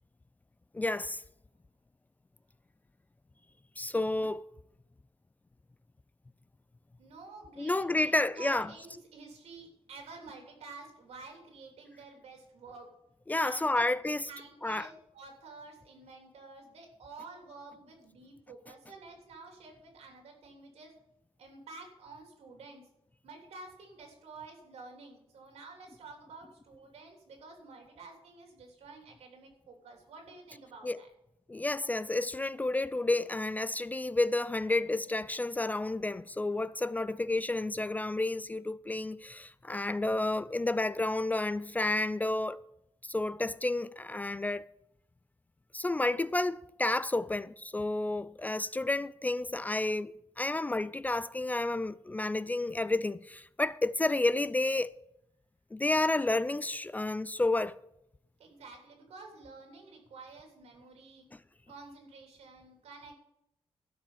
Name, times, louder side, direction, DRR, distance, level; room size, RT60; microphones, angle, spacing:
voice 1, 0.7-1.2 3.8-4.4 7.6-8.7 13.3-14.2 14.6-14.9 30.8-31.0 31.5-42.6 43.1-44.7 45.7-54.9 55.7-57.7, left 2 dB, 15° left, 0.3 m, -30 dB
voice 2, 7.0-12.9 13.4-13.9 14.3-20.9 21.4-22.9 23.2-31.1 58.4-61.3 61.6-63.2, right 3 dB, 85° right, 3.3 m, -50 dB
12.5 x 5.3 x 8.6 m
cardioid pair, 115°, 10 cm